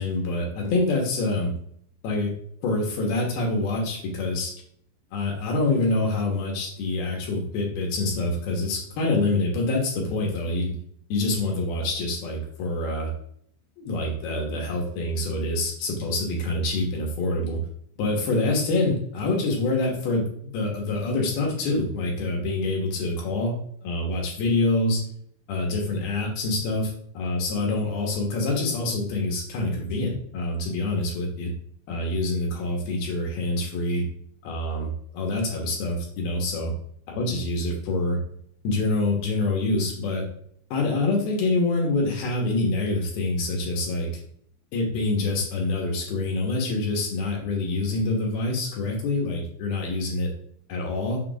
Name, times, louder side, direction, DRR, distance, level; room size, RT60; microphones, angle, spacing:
voice 1, 0.0-1.5 2.0-2.3 2.6-4.5 5.1-10.7 11.1-13.1 13.8-17.6 18.0-23.5 23.8-25.0 25.5-31.5 31.9-34.0 34.4-36.7 37.1-38.2 38.6-40.2 40.7-44.1 44.7-50.3 50.7-51.2, left 2 dB, 70° left, 0 dB, 2.6 m, -26 dB
6.9 x 5.8 x 2.4 m, 0.66 s
omnidirectional pair, 5.2 m